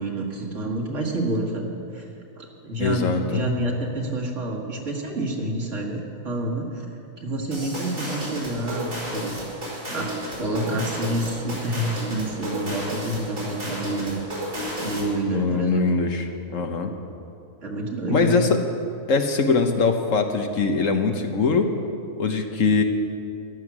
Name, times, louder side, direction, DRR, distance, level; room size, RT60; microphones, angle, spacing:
voice 1, 0.0-2.1 2.4-6.9 7.2-9.4 9.7-14.2 14.8-15.9 17.6-18.4, right 1 dB, 65° right, 0 dB, 2.1 m, -28 dB
voice 2, 2.8-3.4 15.3-16.2 16.5-16.9 18.1-18.5 19.1-21.7 22.2-22.8, left 4 dB, 70° left, 5 dB, 1.4 m, -22 dB
sound 1, 7.5-15.2, equal, 85° right, 4.9 m, -32 dB
14.0 x 11.5 x 6.1 m, 2.5 s
omnidirectional pair, 1.4 m